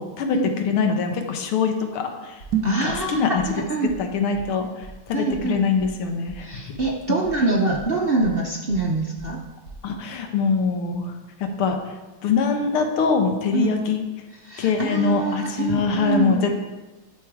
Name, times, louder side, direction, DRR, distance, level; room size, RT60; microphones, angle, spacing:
voice 1, 0.0-3.4 4.0-6.5 7.1-7.2 9.8-11.1 11.4-12.0 12.2-14.0 14.6-16.5, left 5 dB, 85° left, 4 dB, 1.9 m, -23 dB
sound 1, 2.4-2.5 2.9-3.0 3.4-3.5 3.8-3.9 4.3-4.4 4.8-4.9 5.3-5.4 5.8-5.9 6.3-6.4 6.7-6.8 7.2-7.3 7.7-7.8 8.2-8.3 8.7-8.8 9.2-9.3 9.6-9.7, right 3 dB, 35° left, 4.2 m, -41 dB
sound 2, 2.4-2.9, right 8 dB, 55° right, 2.0 m, -26 dB
voice 2, 2.6-3.9 5.1-5.6 6.4-9.4 13.5-13.7 14.4-16.5, right 3 dB, 75° right, -1 dB, 0.5 m, -25 dB
11.5 x 6.9 x 4.7 m, 1.2 s
omnidirectional pair, 2.3 m